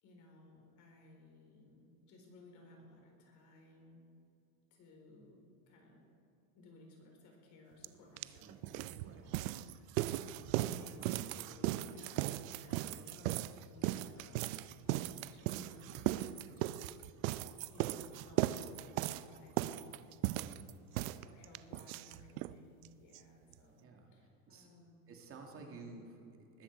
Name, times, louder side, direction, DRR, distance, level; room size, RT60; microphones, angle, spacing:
voice 1, 0.0-4.0 4.7-6.0 6.5-16.8 17.7-20.0 20.2-25.0 25.5-25.8, left 2 dB, 40° left, 1 dB, 4.3 m, -59 dB
sound 1, 7.8-7.9 8.2-22.6 22.8-22.9 23.1-23.2 23.5-23.6, right 15 dB, 65° right, 0.6 m, -37 dB
voice 2, 10.9-11.3 11.8-12.0 20.4-21.2 23.8-24.1 24.5-24.7 25.1-26.6, right 4 dB, 30° right, 2 dB, 2.3 m, -54 dB
20.5 x 14.0 x 4.7 m, 2.4 s
supercardioid pair, 145°, 44 cm